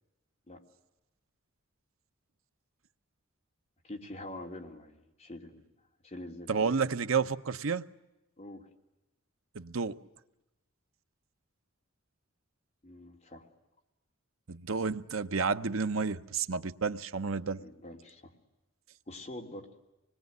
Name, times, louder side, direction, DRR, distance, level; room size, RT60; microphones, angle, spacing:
voice 1, 3.8-5.6 6.0-6.8 8.4-8.7 12.8-13.5 17.4-18.3 19.1-19.7, left 1 dB, 30° left, 3.1 m, -45 dB
voice 2, 6.5-7.8 9.5-10.0 14.5-17.6, right 5 dB, 85° right, 0.9 m, -31 dB
26.0 x 21.0 x 9.5 m
head